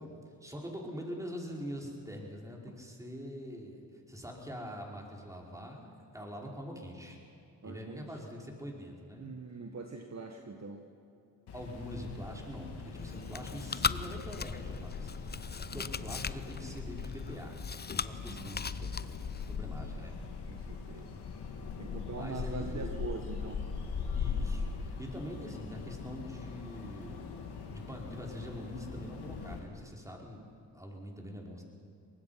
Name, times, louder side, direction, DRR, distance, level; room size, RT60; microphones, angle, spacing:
voice 1, 0.0-3.8 4.1-7.2 7.6-9.3 11.5-15.5 15.7-17.6 18.0-18.8 19.5-20.2 22.1-23.0 24.1-27.4 27.7-30.4 30.7-31.6, equal, 10° right, -1 dB, 5.1 m, -44 dB
voice 2, 7.6-8.0 9.2-10.8 13.2-13.3 15.6-15.8 18.2-18.9 20.5-21.2 21.8-23.6, right 4 dB, 40° right, 4 dB, 1.7 m, -43 dB
sound 1, 11.5-29.6, left 5 dB, 75° left, 2.8 m, -41 dB
Chewing mastication, 12.9-19.6, left 5 dB, 25° left, 0.6 m, -38 dB
23.5 x 19.5 x 5.9 m, 2.7 s
supercardioid pair, 55°, 40 cm